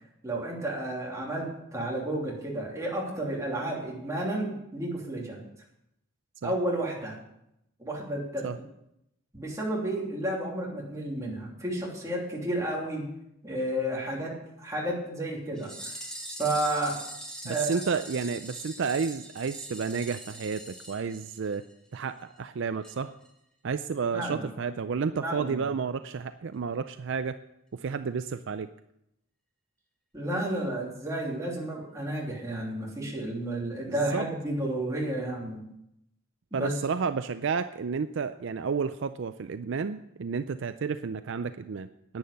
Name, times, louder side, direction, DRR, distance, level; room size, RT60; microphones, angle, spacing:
voice 1, 0.2-5.4 6.4-7.1 7.8-8.5 9.3-13.0 13.4-15.9 16.4-17.0 17.4-17.8 24.1-24.4 25.2-25.7 30.1-35.6 36.5-36.7, right 1 dB, 15° right, -3 dB, 3.0 m, -31 dB
sound 1, 15.6-21.7 22.0-22.1 22.4-22.5 22.8-23.0 23.2-23.3, right 1 dB, 5° left, 1.8 m, -42 dB
voice 2, 17.4-21.6 21.9-23.1 23.6-27.4 27.7-28.7 33.9-34.3 36.5-42.2, right 5 dB, 55° right, 11 dB, 0.4 m, -31 dB
10.5 x 9.5 x 6.8 m, 0.81 s
head